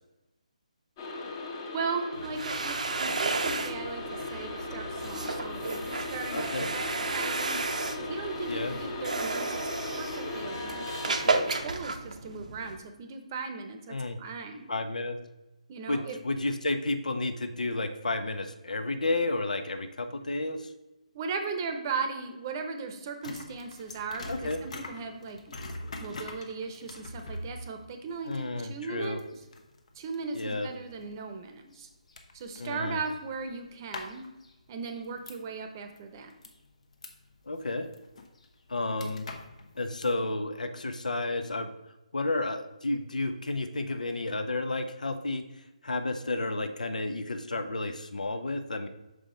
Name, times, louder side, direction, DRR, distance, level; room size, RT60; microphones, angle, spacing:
sound 1, 1.0-11.6, left 2 dB, 30° left, 1.0 m, -38 dB
voice 1, 1.7-10.8 11.0-14.7 15.7-16.2 21.1-25.6 26.0-29.2 29.9-31.9 32.3-34.3 34.7-36.3, right 4 dB, 30° right, 6 dB, 0.8 m, -37 dB
sound 2, 2.1-12.8, right 3 dB, 70° right, 0.7 m, -33 dB
voice 2, 6.3-6.7 8.5-8.7 13.9-14.2 14.7-15.2 15.9-20.7 24.3-24.6 28.2-29.2 30.3-30.7 32.6-33.0 37.5-37.9 38.7-39.3 39.8-41.7 42.1-45.4 45.8-48.9, left 2 dB, 80° left, 8 dB, 0.7 m, -31 dB
sound 3, 23.2-35.6 36.0-40.2, left 2 dB, 60° left, 1.0 m, -44 dB
6.3 x 5.0 x 3.8 m, 0.98 s
figure-of-eight pair, 150°, 4 cm